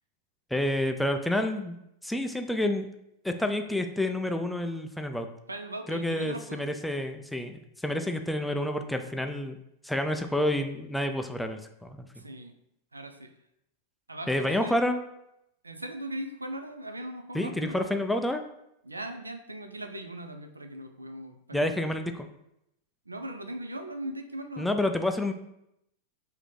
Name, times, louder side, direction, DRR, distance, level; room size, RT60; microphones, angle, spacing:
voice 1, 0.5-1.8 2.0-2.9 3.2-5.3 5.9-9.6 9.8-12.1 14.3-15.0 17.3-18.4 21.5-22.3 24.6-25.3, left 1 dB, 5° left, 6 dB, 0.3 m, -29 dB
voice 2, 5.5-6.6 12.2-12.5 12.9-13.3 14.1-14.8 15.6-18.0 18.8-21.9 23.1-24.8, right 1 dB, 80° right, 6 dB, 0.3 m, -39 dB
3.5 x 2.7 x 3.6 m, 0.81 s
figure-of-eight pair, 90°, 0 cm